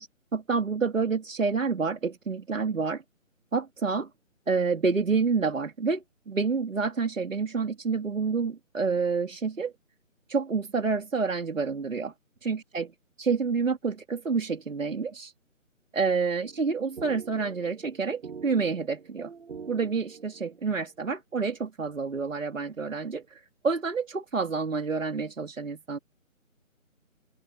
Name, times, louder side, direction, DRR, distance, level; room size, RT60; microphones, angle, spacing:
voice 1, 0.0-3.0 3.5-4.1 4.5-9.7 10.3-12.1 12.4-12.9 13.2-15.3 15.9-19.3 19.7-26.0, right 4 dB, 70° right, 3.5 m, -28 dB
sound 1, 16.4-20.7, right 5 dB, 55° right, 2.2 m, -44 dB
open air
figure-of-eight pair, 155°, 40 cm